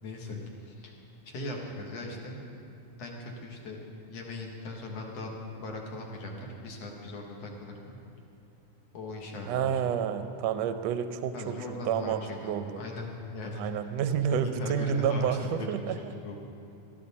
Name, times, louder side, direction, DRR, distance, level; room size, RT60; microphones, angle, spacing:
voice 1, 0.0-0.9 1.2-2.5 3.0-3.8 4.1-5.3 5.6-8.0 8.9-9.8 11.3-13.6 14.3-16.4, left 2 dB, 60° left, 0 dB, 2.3 m, -39 dB
voice 2, 9.5-11.5 11.8-12.8 13.6-16.0, right 8 dB, 75° right, 9 dB, 1.6 m, -29 dB
19.0 x 12.5 x 4.2 m, 2.6 s
omnidirectional pair, 3.6 m